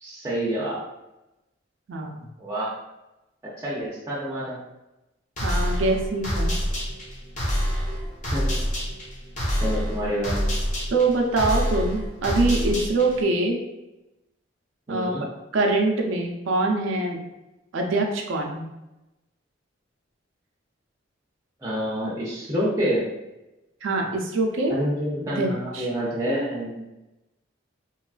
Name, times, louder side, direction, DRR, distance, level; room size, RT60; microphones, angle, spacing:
voice 1, 0.0-0.8 2.4-2.7 3.6-4.6 8.3-8.6 9.6-10.4 14.9-15.2 21.6-23.0 24.7-26.8, equal, 15° right, -6 dB, 0.4 m, -27 dB
voice 2, 1.9-2.2 5.4-6.5 10.9-13.6 14.9-15.1 15.5-17.2 17.7-18.6 23.8-24.7 25.3-25.9, right 2 dB, 85° right, 1 dB, 0.4 m, -24 dB
sound 1, 5.4-13.2, equal, 40° left, 0.7 m, -27 dB
2.9 x 2.3 x 2.3 m, 0.97 s
head